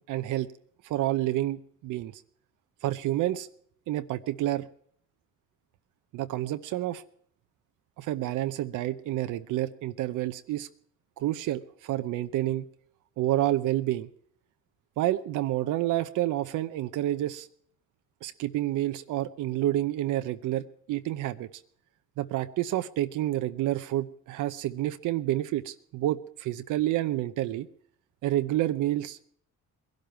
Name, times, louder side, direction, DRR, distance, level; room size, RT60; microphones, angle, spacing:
voice 1, 0.1-0.5 0.9-2.1 2.8-3.5 3.9-4.7 6.1-7.0 8.0-10.7 11.2-12.6 13.2-14.1 15.0-17.5 18.2-21.5 22.2-27.7 28.2-29.2, right 14 dB, 85° right, 9 dB, 0.8 m, -29 dB
20.5 x 12.0 x 4.5 m, 0.63 s
cardioid pair, 90°, 30 cm